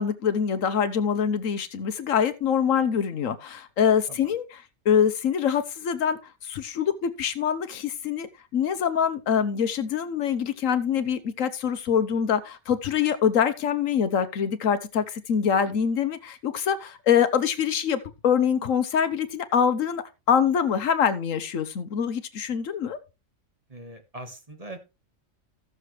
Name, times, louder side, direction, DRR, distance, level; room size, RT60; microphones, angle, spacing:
voice 1, 0.0-23.0, left 7 dB, 80° left, 1.3 m, -25 dB
voice 2, 23.7-24.8, right 1 dB, 30° right, 1.5 m, -41 dB
15.0 x 6.9 x 3.2 m
omnidirectional pair, 1.4 m